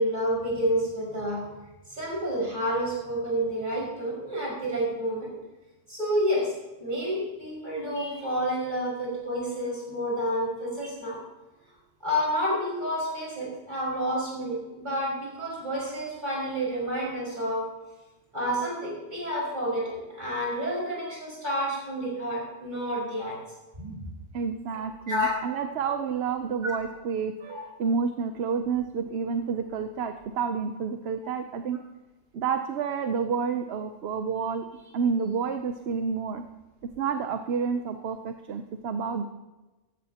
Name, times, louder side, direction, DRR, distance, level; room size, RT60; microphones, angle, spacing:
voice 1, 0.0-1.4 1.9-5.4 5.9-6.5 6.8-11.2 12.0-17.6 18.3-23.4 23.8-24.0 25.1-25.3 26.6-26.7 27.5-27.6, equal, 35° right, -4 dB, 5.7 m, -29 dB
voice 2, 24.3-31.8 32.3-36.4 37.0-39.3, right 6 dB, 60° right, 7 dB, 0.9 m, -29 dB
15.5 x 14.0 x 2.9 m, 1.1 s
omnidirectional pair, 1.3 m